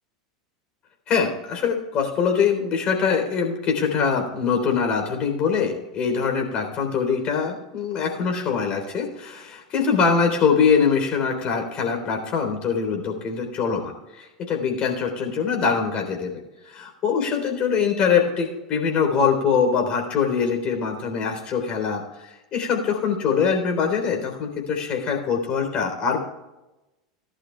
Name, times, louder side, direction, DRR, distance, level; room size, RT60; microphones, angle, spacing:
voice 1, 1.1-26.2, left 6 dB, 35° left, 2 dB, 3.6 m, -23 dB
19.5 x 11.5 x 2.3 m, 1.0 s
figure-of-eight pair, 80°, 3 cm